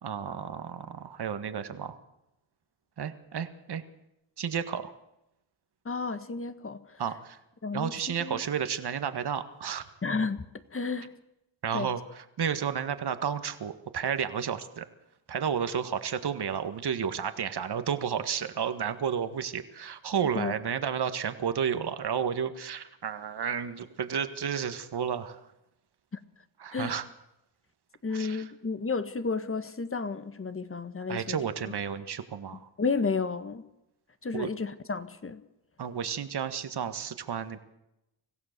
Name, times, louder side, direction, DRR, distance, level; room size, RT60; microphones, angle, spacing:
voice 1, 0.0-2.0 3.0-3.8 4.4-4.9 7.0-7.4 7.7-9.9 11.6-14.9 15.3-25.4 26.6-27.1 28.1-28.5 31.1-32.7 34.3-34.5 35.8-37.6, right 7 dB, 55° right, 1.8 m, -32 dB
voice 2, 5.8-7.0 7.6-7.9 8.2-8.4 10.0-11.1 11.7-11.9 20.3-20.5 26.7-27.0 28.0-31.4 32.8-33.6 34.2-35.4, left 4 dB, 25° left, 1.5 m, -32 dB
26.0 x 15.5 x 6.8 m
cardioid pair, 85°, 48 cm